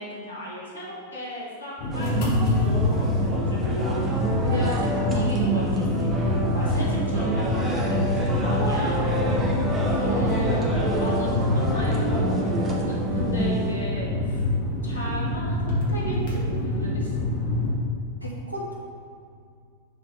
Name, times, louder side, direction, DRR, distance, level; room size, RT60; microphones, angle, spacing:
voice 1, 0.0-4.0 4.4-9.0 9.8-10.7 11.0-14.4 14.8-17.2, equal, 75° left, -5 dB, 1.5 m, -34 dB
sound 1, 1.8-17.7, left 1 dB, 50° left, 1.6 m, -26 dB
sound 2, 1.9-13.7, right 2 dB, 20° right, 1.1 m, -28 dB
voice 2, 9.4-10.2 18.2-18.7, right 1 dB, 90° right, -3 dB, 1.3 m, -36 dB
7.0 x 3.9 x 4.8 m, 2.3 s
figure-of-eight pair, 90°, 0 cm